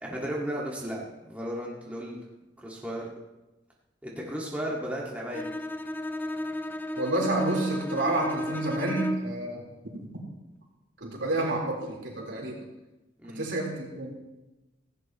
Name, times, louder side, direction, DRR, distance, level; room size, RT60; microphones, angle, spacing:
voice 1, 0.0-2.2 2.6-3.1 4.0-5.5 13.2-13.5, equal, 10° right, -4 dB, 1.9 m, -34 dB
Bowed string instrument, 5.3-9.4, left 1 dB, 10° left, 0.6 m, -34 dB
voice 2, 7.0-9.6 9.9-10.1 11.0-12.6 13.4-14.1, right 2 dB, 75° right, -2 dB, 3.9 m, -29 dB
17.5 x 16.0 x 3.0 m, 1.0 s
head